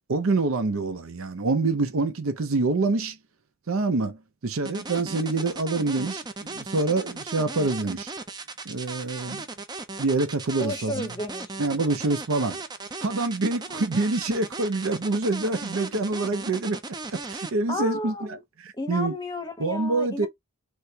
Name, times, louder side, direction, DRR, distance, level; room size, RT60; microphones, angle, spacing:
voice 1, 0.1-3.2 3.7-8.1 8.6-9.4 10.0-11.1 11.6-12.6 13.0-16.8 17.1-19.1 19.6-20.3, right 3 dB, 70° right, 0.6 m, -26 dB
sound 1, 4.6-17.5, right 3 dB, 20° right, 0.4 m, -37 dB
voice 2, 10.6-11.6 17.7-18.4 18.8-20.3, left 1 dB, 20° left, 0.8 m, -32 dB
3.3 x 3.0 x 2.7 m
head